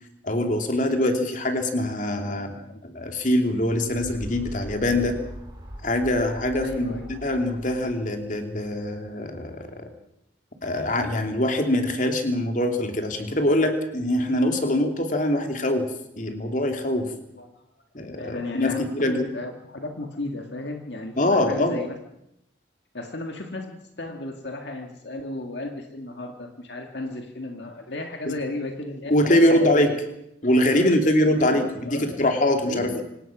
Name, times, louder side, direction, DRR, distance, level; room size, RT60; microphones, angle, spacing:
voice 1, 0.2-2.5 2.8-5.2 5.8-9.9 10.6-15.9 16.2-17.1 17.9-19.3 21.2-21.8 28.3-28.4 29.1-30.0 30.4-33.0, left 1 dB, 45° left, 5 dB, 2.8 m, -23 dB
voice 2, 2.2-2.8 6.6-7.1 17.4-17.5 18.2-22.0 22.9-30.0 30.7-30.9 31.3-32.2 32.6-33.0, left 2 dB, 65° left, 4 dB, 1.9 m, -34 dB
sound 1, 3.6-9.0, equal, 25° right, 4.2 m, -41 dB
26.0 x 18.0 x 6.1 m, 0.82 s
head